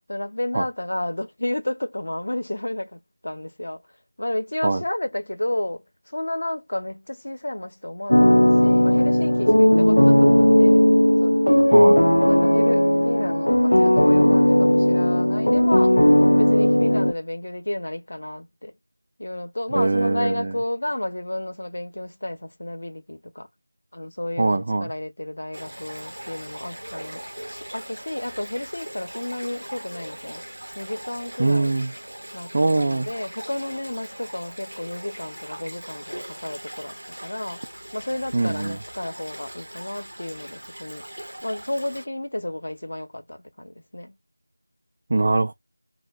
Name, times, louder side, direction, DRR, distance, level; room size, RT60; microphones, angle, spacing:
voice 1, 0.1-3.8 4.2-10.8 11.2-11.7 12.3-16.0 16.4-18.7 19.2-23.5 23.9-27.2 27.5-30.4 30.7-31.7 32.3-37.6 37.9-41.0 41.4-44.1, left 1 dB, 60° left, 0.8 m, -31 dB
sound 1, 8.1-17.1, left 1 dB, 90° left, 0.3 m, -16 dB
voice 2, 11.7-12.0 19.7-20.5 24.4-24.9 31.4-31.9 32.5-33.1 38.3-38.8 45.1-45.5, right 2 dB, 35° right, 0.3 m, -22 dB
sound 2, 25.5-42.1, right 1 dB, 80° right, 0.6 m, -40 dB
2.8 x 2.1 x 3.5 m
figure-of-eight pair, 175°, 0 cm